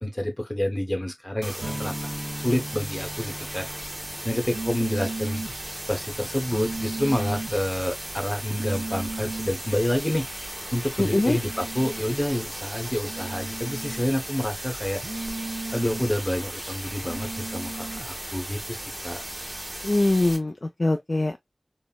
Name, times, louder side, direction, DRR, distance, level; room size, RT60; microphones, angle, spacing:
voice 1, 0.0-2.1 2.4-3.7 4.2-5.4 5.9-10.3 10.7-15.0 15.7-19.2, left 1 dB, 20° left, 1.0 m, -28 dB
sound 1, 1.4-20.4, right 1 dB, 25° right, 1.1 m, -36 dB
sound 2, 1.6-9.2, equal, 45° right, 1.5 m, -41 dB
sound 3, 4.5-5.6 6.5-7.6 8.5-9.6 11.0-12.1 13.0-14.1 15.0-16.1 17.0-18.1, right 3 dB, 70° right, 0.6 m, -35 dB
voice 2, 11.0-11.4 19.8-21.4, left 2 dB, 50° left, 0.3 m, -23 dB
4.0 x 2.0 x 2.3 m
wide cardioid pair, 50°, 0 cm